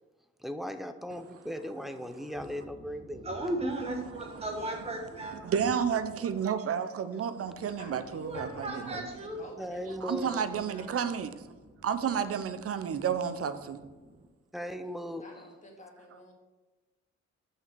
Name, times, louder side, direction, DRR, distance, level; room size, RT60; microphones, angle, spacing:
voice 1, 0.4-3.3 9.6-10.4 14.5-15.3, equal, ahead, 8 dB, 0.6 m, -38 dB
voice 2, 3.2-5.5 8.2-9.4 11.8-11.9 14.0-14.1, right 1 dB, 20° right, 1 dB, 1.2 m, -35 dB
voice 3, 4.1-4.5 5.3-9.1 10.0-11.3 11.8-13.8, right 7 dB, 50° right, 11 dB, 0.7 m, -31 dB
voice 4, 7.8-11.1 15.1-16.3, left 1 dB, 25° left, 0 dB, 2.1 m, -50 dB
5.9 x 5.7 x 6.1 m, 1.3 s
cardioid pair, 90°, 30 cm